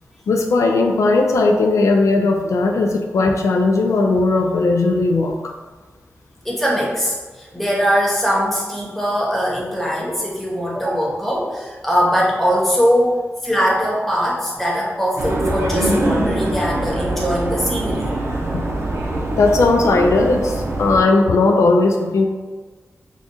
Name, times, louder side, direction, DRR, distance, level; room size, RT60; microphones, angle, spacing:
voice 1, 0.3-5.5 18.5-18.6 19.3-22.3, left 3 dB, 85° left, 3 dB, 0.3 m, -17 dB
voice 2, 6.4-18.1, equal, 5° left, -5 dB, 1.0 m, -21 dB
sound 1, 15.2-21.0, right 1 dB, 60° right, 0.6 m, -23 dB
4.9 x 2.3 x 2.6 m, 1.3 s
wide cardioid pair, 90°, 5 cm